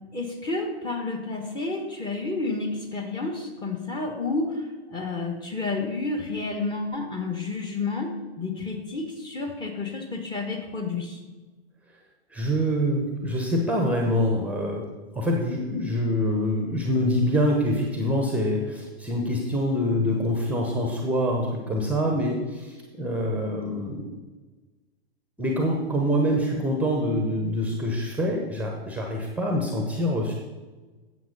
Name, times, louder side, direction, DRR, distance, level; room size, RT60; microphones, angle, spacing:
voice 1, 0.1-11.2, left 3 dB, 15° left, 3 dB, 1.2 m, -30 dB
voice 2, 12.3-14.9 15.1-24.1 25.4-30.3, equal, 5° right, 1 dB, 1.0 m, -25 dB
9.3 x 7.5 x 5.3 m, 1.3 s
figure-of-eight pair, 115°, 32 cm